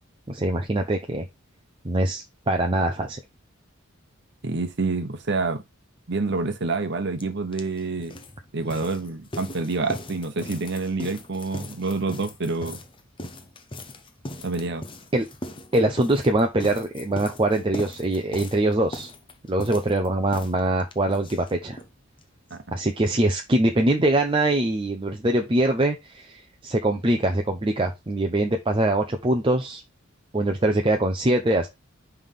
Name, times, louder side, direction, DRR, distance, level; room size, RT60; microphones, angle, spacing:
voice 1, 0.3-1.3 1.8-3.2 15.1-15.3 15.7-19.1 19.5-21.8 22.7-29.8 30.3-31.7, right 1 dB, 25° right, 0.6 m, -23 dB
voice 2, 4.4-5.6 6.1-8.2 8.5-12.8 14.4-14.8 22.5-22.6, right 3 dB, 55° right, 1.0 m, -27 dB
sound 1, 7.2-7.3 7.5-21.9 22.2-22.3 22.5-22.6 22.9-23.0, left 1 dB, 25° left, 0.8 m, -39 dB
5.6 x 3.4 x 5.6 m
head